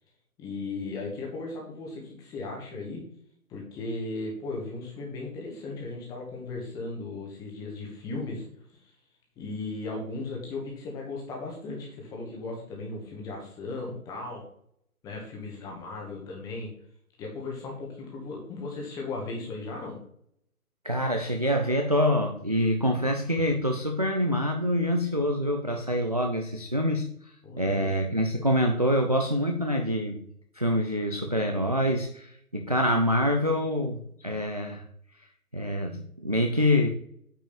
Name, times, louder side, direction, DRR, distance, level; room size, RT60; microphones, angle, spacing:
voice 1, 0.4-3.0 3.5-8.4 8.8-8.9 9.4-14.4 15.0-16.7 17.2-20.0 27.4-28.2, left 3 dB, 10° left, -1 dB, 1.4 m, -36 dB
voice 2, 20.8-30.2 30.5-34.8 35.5-36.9, equal, 25° right, 3 dB, 0.5 m, -26 dB
9.0 x 5.0 x 5.1 m, 0.67 s
figure-of-eight pair, 140°, 45 cm